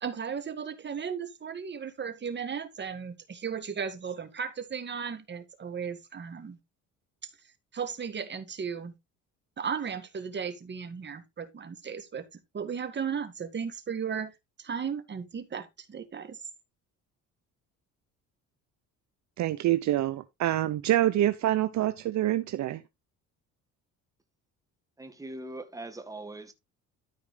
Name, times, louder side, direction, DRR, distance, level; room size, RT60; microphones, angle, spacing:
voice 1, 0.0-6.6 7.2-7.3 7.7-8.9 9.6-14.3 14.6-16.4, right 6 dB, 35° right, 1.9 m, -35 dB
voice 2, 19.4-22.8, right 13 dB, 60° right, 0.8 m, -26 dB
voice 3, 25.0-26.5, right 2 dB, 10° right, 1.8 m, -41 dB
13.0 x 4.7 x 3.7 m
cardioid pair, 105°, 32 cm